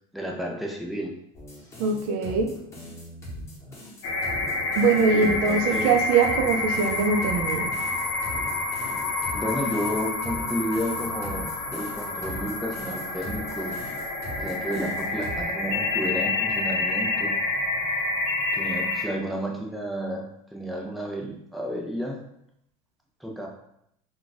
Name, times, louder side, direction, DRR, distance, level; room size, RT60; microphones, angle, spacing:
voice 1, 0.1-1.1 5.1-5.9 9.3-13.8 14.4-17.4 18.5-22.2 23.2-23.5, equal, ahead, -1 dB, 0.4 m, -31 dB
sound 1, 1.3-15.4, equal, 15° left, 1.0 m, -40 dB
voice 2, 1.8-2.5 4.8-7.7, right 5 dB, 55° right, 3 dB, 0.6 m, -22 dB
sound 2, 4.0-19.0, left 3 dB, 65° left, 0.7 m, -28 dB
2.4 x 2.3 x 3.9 m, 0.75 s
supercardioid pair, 150°, 17 cm